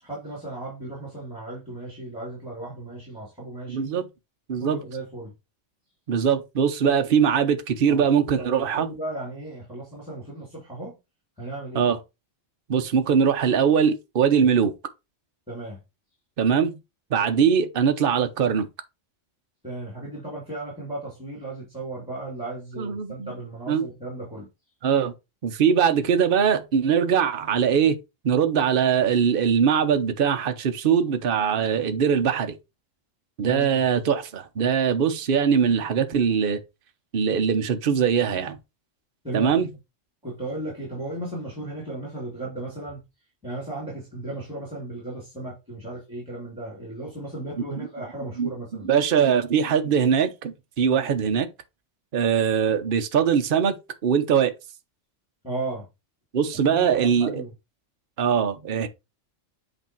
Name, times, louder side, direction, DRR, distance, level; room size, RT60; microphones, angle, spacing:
voice 1, 0.0-3.9 4.6-5.3 6.8-7.0 7.9-8.0 8.4-11.0 11.4-11.9 15.5-15.8 19.6-24.5 33.5-33.8 39.2-39.6 40.2-43.0 43.4-48.9 50.8-51.1 55.4-55.9 56.6-57.5, right 2 dB, 5° right, 2.7 m, -35 dB
voice 2, 3.7-4.1 4.5-4.8 6.1-8.9 11.7-12.0 12.7-14.7 16.4-16.8 17.1-18.7 22.8-23.3 23.7-23.8 24.8-25.1 25.4-28.0 28.2-32.5 33.4-36.6 37.1-38.6 39.3-39.7 48.4-48.5 48.8-51.5 52.1-53.7 54.0-54.5 56.3-57.4 58.2-58.9, right 7 dB, 50° right, 0.9 m, -21 dB
8.0 x 2.7 x 4.4 m
omnidirectional pair, 1.3 m